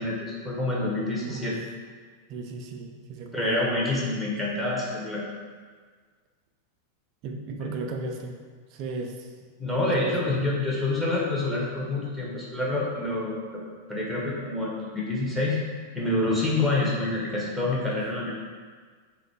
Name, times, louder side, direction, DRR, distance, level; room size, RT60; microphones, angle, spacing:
voice 1, 0.0-1.5 3.3-5.2 9.6-13.6 13.9-15.6 15.9-18.3, left 2 dB, ahead, -5 dB, 0.9 m, -27 dB
voice 2, 1.2-1.6 2.3-3.7 7.2-9.3 9.9-10.1 17.7-18.0, right 3 dB, 40° right, 3 dB, 0.4 m, -36 dB
3.8 x 2.5 x 3.3 m, 1.5 s
figure-of-eight pair, 90°, 0 cm